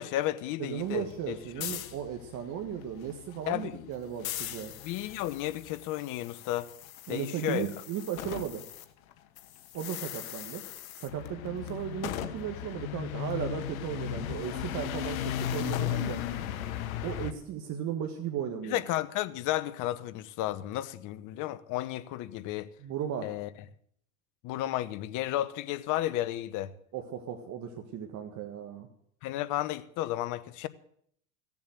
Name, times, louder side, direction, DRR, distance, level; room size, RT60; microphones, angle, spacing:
voice 1, 0.0-1.7 3.5-3.9 4.8-6.7 7.1-7.7 18.7-22.7 23.2-23.5 24.4-26.7 29.2-30.7, left 14 dB, 45° left, 1.0 m, -33 dB
voice 2, 0.6-4.7 7.1-8.6 9.7-10.6 11.0-16.2 17.0-18.8 22.8-23.3 26.9-28.9, right 9 dB, 40° right, 1.6 m, -36 dB
sound 1, 0.8-8.8 9.1-17.3, left 11 dB, 75° left, 1.3 m, -37 dB
15.5 x 7.3 x 7.8 m
hypercardioid pair, 105°, 42 cm